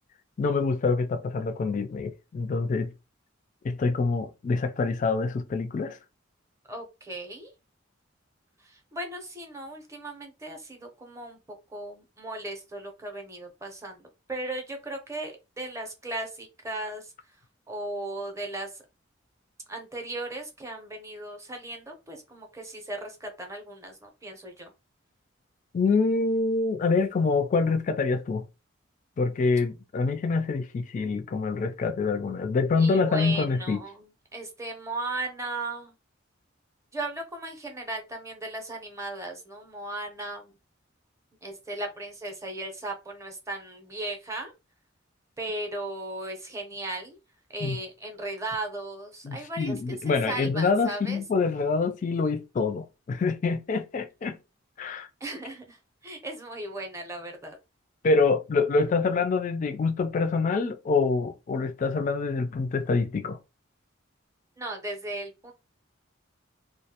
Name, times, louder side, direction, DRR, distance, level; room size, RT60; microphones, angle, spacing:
voice 1, 0.4-2.9 3.6-6.0 25.7-28.4 29.2-33.8 47.6-47.8 49.2-54.4 54.8-55.1 58.0-63.4, left 4 dB, 40° left, 0.3 m, -26 dB
voice 2, 6.7-7.5 8.6-11.4 11.7-17.1 17.7-18.8 19.7-24.7 32.8-35.9 36.9-40.5 41.4-44.5 45.4-47.2 47.5-51.2 55.2-57.6 64.6-65.5, right 2 dB, 15° right, 0.6 m, -37 dB
2.3 x 2.0 x 2.8 m
head